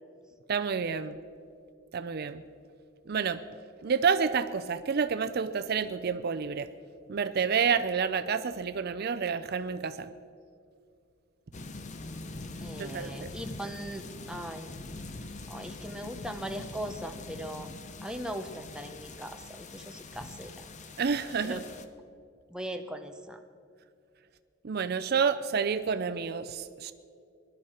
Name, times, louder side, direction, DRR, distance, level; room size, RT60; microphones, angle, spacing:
voice 1, 0.5-1.2 1.9-2.4 3.1-3.4 3.8-6.7 7.1-10.1 12.8-13.3 21.0-21.6 24.6-26.9, right 6 dB, 50° right, 12 dB, 0.5 m, -29 dB
sound 1, 11.5-21.9, left 2 dB, 35° left, 0.7 m, -43 dB
voice 2, 12.6-14.7 15.5-17.7 18.0-20.6 21.4-21.6 22.5-23.4, right 1 dB, 5° right, 5 dB, 0.7 m, -39 dB
21.0 x 12.0 x 4.4 m, 2.4 s
head